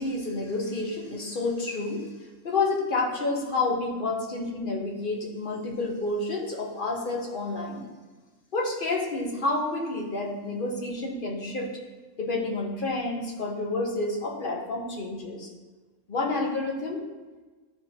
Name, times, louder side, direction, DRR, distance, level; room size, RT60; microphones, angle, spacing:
voice 1, 0.0-2.1 2.4-7.9 8.5-11.8 12.2-15.5 16.1-17.0, left 2 dB, 40° left, -1 dB, 1.1 m, -29 dB
10.5 x 3.7 x 2.8 m, 1.3 s
omnidirectional pair, 1.5 m